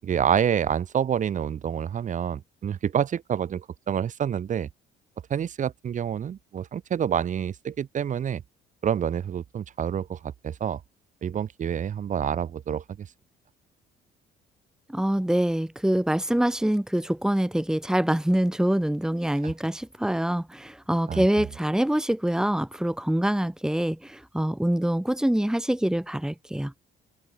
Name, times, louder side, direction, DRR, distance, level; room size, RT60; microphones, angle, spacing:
voice 1, 0.0-4.7 5.3-8.4 8.8-10.8 11.2-13.1 21.1-21.2, right 8 dB, 50° right, 7.3 m, -27 dB
voice 2, 14.9-26.7, right 1 dB, 5° right, 5.2 m, -25 dB
cardioid pair, 110°, 17 cm